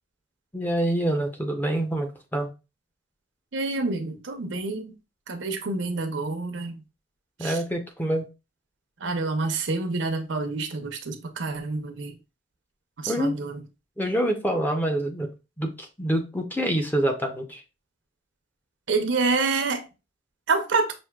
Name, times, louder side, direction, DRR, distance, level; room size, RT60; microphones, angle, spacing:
voice 1, 0.5-2.5 7.4-8.2 13.1-13.3 14.0-15.3 15.6-17.6, right 1 dB, 10° left, 0.6 m, -26 dB
voice 2, 3.5-4.9 5.3-6.7 7.4-7.6 9.0-12.2 13.0-13.6 18.9-19.9 20.5-20.9, right 3 dB, 80° right, 0.7 m, -27 dB
6.1 x 2.6 x 2.3 m
head